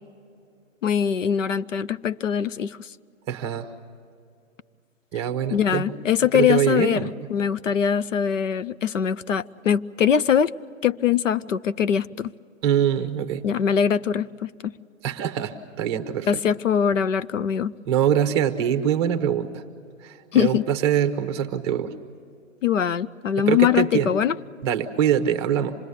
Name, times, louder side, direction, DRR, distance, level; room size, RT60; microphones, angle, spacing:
voice 1, 0.8-2.9 5.1-5.2 5.5-10.5 10.8-12.3 13.4-14.7 16.2-17.7 20.3-20.6 22.6-24.4, left 8 dB, 65° left, 0.7 m, -22 dB
voice 2, 3.3-3.7 5.1-5.9 6.3-7.1 12.6-13.4 15.0-16.3 17.9-19.6 20.0-21.9 23.4-24.1 24.6-25.8, right 9 dB, 20° right, 0.9 m, -23 dB
26.5 x 20.0 x 8.3 m
hypercardioid pair, 145°, 40 cm